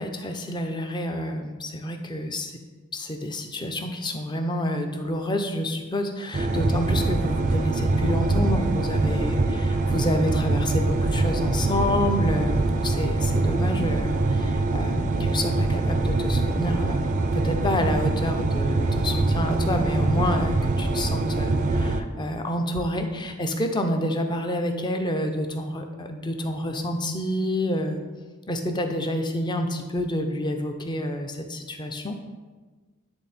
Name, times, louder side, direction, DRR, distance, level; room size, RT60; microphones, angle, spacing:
voice 1, 0.0-2.6 2.9-28.0 28.5-32.2, left 1 dB, 20° left, 5 dB, 0.6 m, -28 dB
sound 1, 6.3-22.0, right 2 dB, 35° right, 0.4 m, -24 dB
9.8 x 3.5 x 4.2 m, 1.3 s
head